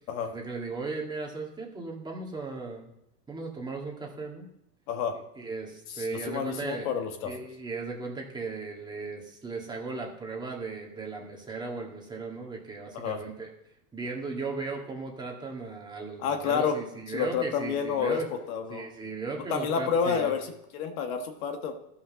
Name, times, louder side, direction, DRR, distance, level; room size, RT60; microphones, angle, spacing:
voice 1, 0.2-2.9 3.3-4.5 5.4-6.9 7.2-13.5 13.9-18.3 18.7-20.3, right 4 dB, 10° right, -1 dB, 2.1 m, -37 dB
voice 2, 5.9-7.3 12.9-13.2 16.2-16.8 17.1-18.9 19.5-21.7, left 6 dB, 60° left, 5 dB, 1.7 m, -29 dB
13.0 x 5.8 x 6.4 m, 0.83 s
supercardioid pair, 140°, 47 cm